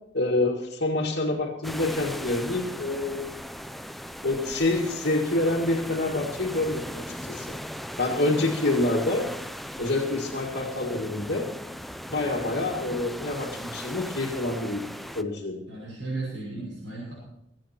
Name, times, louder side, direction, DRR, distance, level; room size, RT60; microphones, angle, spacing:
voice 1, 0.1-3.4 4.2-7.5 8.0-9.3 9.8-11.5 12.1-14.8 15.1-15.6, left 2 dB, 60° left, -5 dB, 2.1 m, -27 dB
sound 1, 1.6-15.2, equal, ahead, 0.5 m, -38 dB
voice 2, 15.7-17.1, right 3 dB, 75° right, -7 dB, 6.3 m, -35 dB
23.0 x 9.2 x 4.4 m, 0.83 s
head